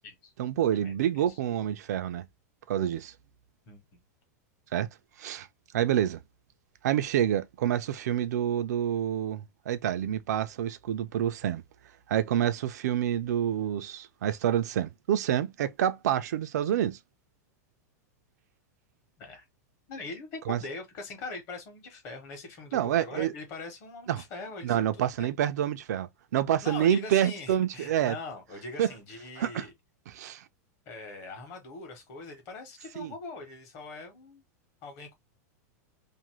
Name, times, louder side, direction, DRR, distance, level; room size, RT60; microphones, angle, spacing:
voice 1, 0.4-2.3 2.7-3.1 4.7-4.9 5.2-5.5 5.7-6.2 6.8-11.6 12.1-17.0 20.5-20.6 22.7-23.3 24.1-24.2 24.6-28.2 28.8-28.9 29.4-29.7 30.1-30.4 33.0-33.1, right 10 dB, 75° right, 0.5 m, -28 dB
voice 2, 3.7-4.0 19.2-19.4 19.9-25.3 26.6-29.7 30.9-34.4 34.8-35.1, left 3 dB, 30° left, 1.0 m, -42 dB
2.6 x 2.5 x 2.9 m
supercardioid pair, 175°, 9 cm